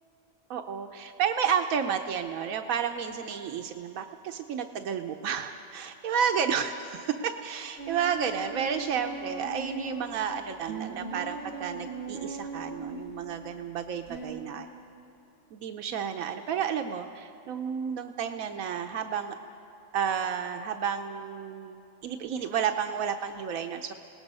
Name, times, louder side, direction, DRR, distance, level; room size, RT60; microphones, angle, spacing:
voice 1, 0.5-14.7 15.5-19.4 19.9-23.9, right 7 dB, 80° right, 5 dB, 1.1 m, -31 dB
sound 1, 7.8-10.2 10.7-13.2 14.1-14.3, right 3 dB, 55° right, 6.2 m, -39 dB
27.0 x 18.5 x 5.4 m, 3.0 s
omnidirectional pair, 1.4 m